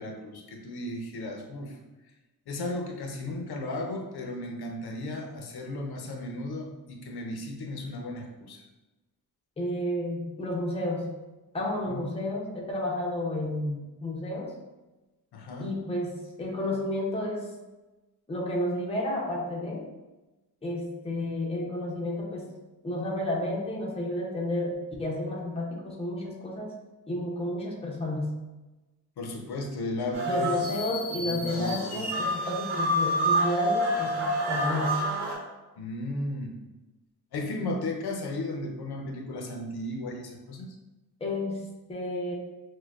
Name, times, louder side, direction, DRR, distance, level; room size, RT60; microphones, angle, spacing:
voice 1, 0.0-1.8 2.5-8.6 11.9-12.2 15.3-15.7 29.2-30.5 31.2-32.1 35.8-36.5 37.3-40.7, left 2 dB, 80° left, 2 dB, 0.6 m, -35 dB
voice 2, 9.6-11.1 11.5-14.5 15.6-17.5 18.3-19.9 20.6-22.5 22.8-24.7 25.0-26.7 27.1-28.3 30.3-35.0 41.2-41.6 41.9-42.3, left 1 dB, 15° left, -3 dB, 0.6 m, -31 dB
sound 1, 30.1-35.3, equal, 55° right, 1.3 m, -28 dB
6.1 x 2.2 x 2.4 m, 1.1 s
wide cardioid pair, 175°, 38 cm